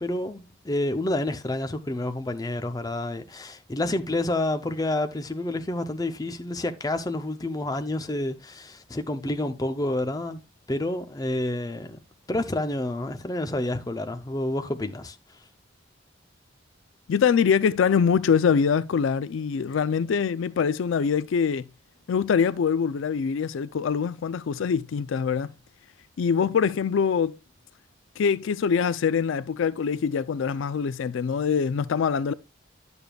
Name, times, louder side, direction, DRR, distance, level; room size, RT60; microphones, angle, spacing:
voice 1, 0.0-10.4 10.7-12.0 12.3-15.2, left 1 dB, 20° left, 0.5 m, -29 dB
voice 2, 17.1-21.7 22.1-25.5 26.2-27.4 28.2-32.3, left 6 dB, 75° left, 0.4 m, -24 dB
10.5 x 6.8 x 2.3 m
head